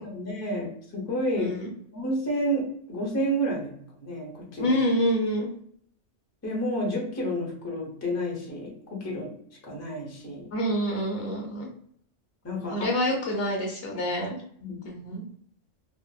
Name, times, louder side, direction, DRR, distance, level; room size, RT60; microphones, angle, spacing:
voice 1, 0.0-1.5 1.9-4.7 6.4-9.3 9.6-10.5 12.4-12.9 14.6-14.8, equal, 20° left, -3 dB, 0.5 m, -30 dB
voice 2, 1.4-1.7 4.6-5.5 10.5-11.7 12.7-14.4 14.8-15.2, equal, 60° left, 0 dB, 0.8 m, -27 dB
2.8 x 2.0 x 2.2 m, 0.63 s
omnidirectional pair, 1.3 m